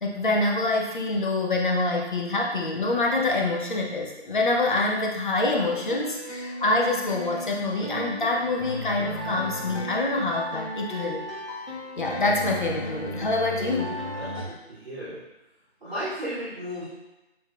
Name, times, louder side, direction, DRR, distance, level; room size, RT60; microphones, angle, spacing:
voice 1, 0.0-11.2 12.0-14.0, left 2 dB, 50° left, 0 dB, 0.8 m, -26 dB
sound 1, 5.6-14.4, left 1 dB, 90° left, 1.3 m, -35 dB
voice 2, 14.1-15.2 15.8-16.8, equal, 5° left, -23 dB, 1.3 m, -34 dB
6.0 x 3.5 x 2.4 m, 1.0 s
figure-of-eight pair, 170°, 33 cm